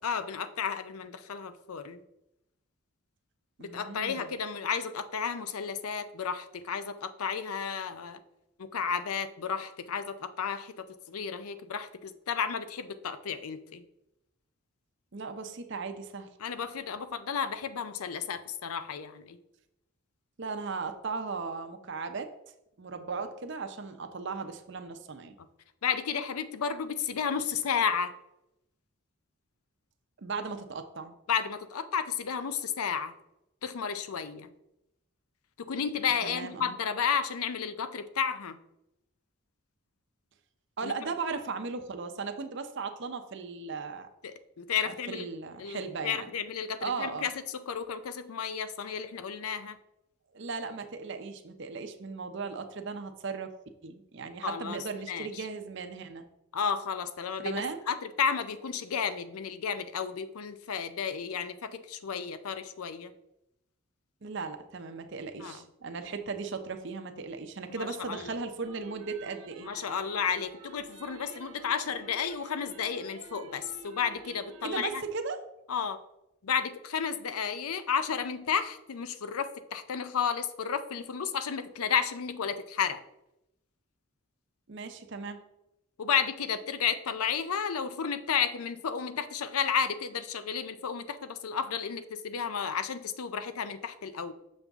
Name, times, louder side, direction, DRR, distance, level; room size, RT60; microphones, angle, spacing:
voice 1, 0.0-2.0 3.6-8.2 8.6-13.8 16.4-19.4 25.8-28.1 31.3-33.1 33.6-34.5 35.6-38.6 40.8-40.9 44.2-45.3 45.6-49.8 54.4-55.5 56.5-63.1 65.4-65.6 67.8-68.3 69.6-75.0 75.7-76.0 76.4-83.0 86.0-94.3, left 7 dB, 85° left, 11 dB, 0.5 m, -32 dB
voice 2, 3.6-4.4 15.1-16.3 20.4-22.3 22.8-25.3 30.2-31.1 36.2-36.7 40.8-44.1 44.8-46.3 46.8-47.3 50.3-53.5 53.8-56.3 57.4-57.8 64.2-69.7 74.6-75.4 84.7-85.4, right 4 dB, 55° right, 7 dB, 0.6 m, -37 dB
sound 1, 68.6-75.0, right 3 dB, 80° right, 0.9 m, -49 dB
6.9 x 5.4 x 3.5 m, 0.87 s
head